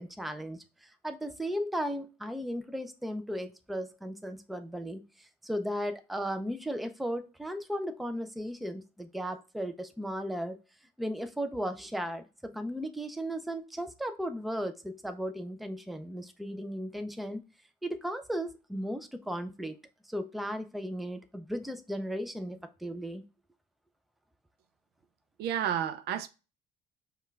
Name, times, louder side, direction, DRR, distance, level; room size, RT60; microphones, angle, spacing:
voice 1, 0.0-10.6 11.0-17.4 17.8-19.8 20.1-23.2, equal, ahead, 0.4 m, -36 dB
voice 2, 25.4-26.3, right 9 dB, 75° right, 0.5 m, -31 dB
5.4 x 2.4 x 3.2 m
cardioid pair, 110°, 17 cm